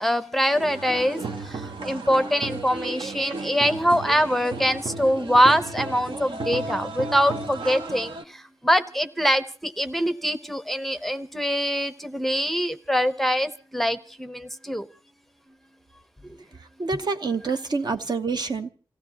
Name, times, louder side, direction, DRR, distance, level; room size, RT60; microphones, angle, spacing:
voice 1, 0.0-14.9 16.2-16.4, equal, ahead, 11 dB, 0.7 m, -24 dB
sound 1, 0.5-8.2, right 3 dB, 65° right, 1.2 m, -34 dB
voice 2, 16.8-18.7, right 4 dB, 50° right, 6 dB, 0.9 m, -27 dB
28.5 x 16.0 x 2.8 m, 0.36 s
wide cardioid pair, 135°, 9 cm